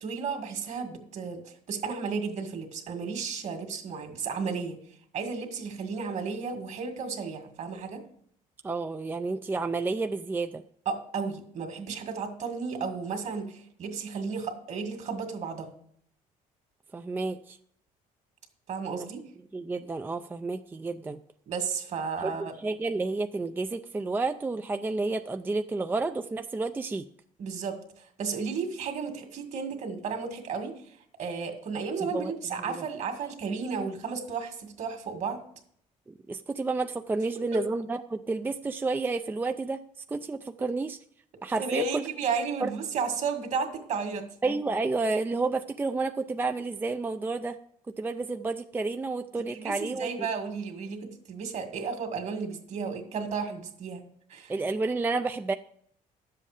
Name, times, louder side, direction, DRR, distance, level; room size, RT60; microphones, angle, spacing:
voice 1, 0.0-4.8 5.1-8.0 10.9-15.7 18.7-19.2 21.5-22.5 27.4-35.4 37.4-37.5 41.6-44.3 49.5-54.0 54.3-54.5, right 5 dB, 55° right, 5 dB, 2.0 m, -33 dB
voice 2, 8.6-10.6 16.9-17.6 18.9-19.1 19.5-21.2 22.2-27.0 32.0-32.3 32.6-32.8 36.1-39.8 40.1-41.0 41.4-42.0 42.6-42.7 44.4-47.6 47.9-50.1 54.5-55.5, right 3 dB, 15° right, 8 dB, 0.4 m, -30 dB
11.0 x 7.7 x 5.0 m, 0.66 s
cardioid pair, 110°, 14 cm